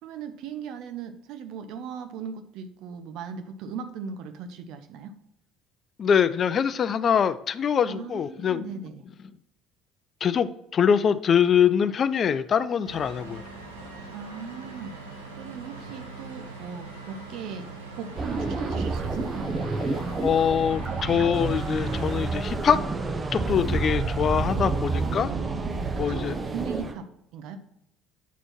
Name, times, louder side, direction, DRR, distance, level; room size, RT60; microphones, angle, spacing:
voice 1, 0.0-5.1 7.8-9.0 14.1-14.9 15.4-17.7 17.9-19.5 21.1-21.2 25.0-27.1 27.3-27.6, right 6 dB, 65° right, 9 dB, 0.8 m, -38 dB
voice 2, 6.0-8.7 10.2-13.4 20.2-22.8 23.3-25.3 26.0-26.4, left 7 dB, 45° left, 14 dB, 0.4 m, -23 dB
sound 1, 12.8-22.2, right 3 dB, 90° right, 1.1 m, -42 dB
sound 2, 18.2-26.9, right 3 dB, 30° right, 0.9 m, -29 dB
8.2 x 4.4 x 4.4 m, 0.80 s
hypercardioid pair, 60°, 0 cm